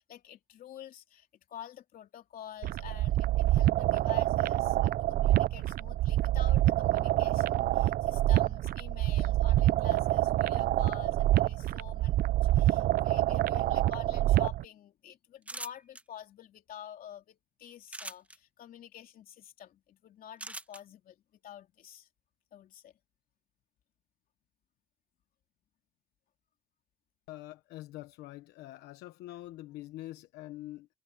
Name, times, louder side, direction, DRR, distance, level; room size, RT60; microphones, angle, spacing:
voice 1, 0.0-22.1 22.5-22.9, left 10 dB, 60° left, 3.0 m, -49 dB
sound 1, 2.6-14.6, right 15 dB, 60° right, 0.5 m, -27 dB
sound 2, 15.4-16.0 17.9-18.4 20.4-20.8, right 1 dB, 10° right, 1.3 m, -41 dB
voice 2, 27.3-30.9, left 16 dB, 85° left, 1.1 m, -45 dB
cardioid pair, 110°, 17 cm